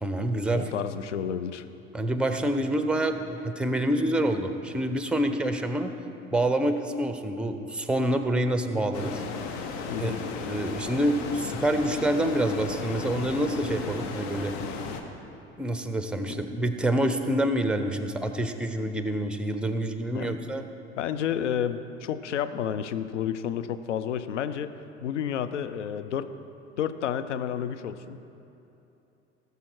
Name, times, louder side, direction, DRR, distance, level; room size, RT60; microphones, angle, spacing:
voice 1, 0.0-0.6 1.9-5.9 6.3-9.2 10.0-14.5 15.6-20.6, right 1 dB, 5° right, 8 dB, 0.8 m, -27 dB
voice 2, 0.5-1.6 9.9-10.2 16.3-16.4 20.1-20.4 21.0-24.7 25.0-26.3 26.8-28.2, left 9 dB, 80° left, 11 dB, 0.6 m, -30 dB
sound 1, 8.9-15.0, left 4 dB, 60° left, 1.2 m, -35 dB
17.5 x 6.8 x 4.7 m, 2.9 s
figure-of-eight pair, 70°, 36 cm